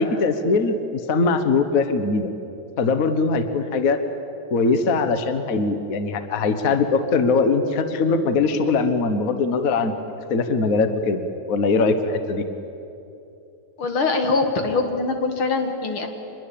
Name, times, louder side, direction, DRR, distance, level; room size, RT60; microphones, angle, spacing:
voice 1, 0.0-2.3 2.8-4.0 4.5-9.9 10.3-11.2 11.5-12.4, left 4 dB, 45° left, 9 dB, 1.5 m, -21 dB
voice 2, 13.8-16.1, left 3 dB, 80° left, 5 dB, 2.9 m, -23 dB
25.5 x 21.5 x 8.7 m, 2.8 s
omnidirectional pair, 2.3 m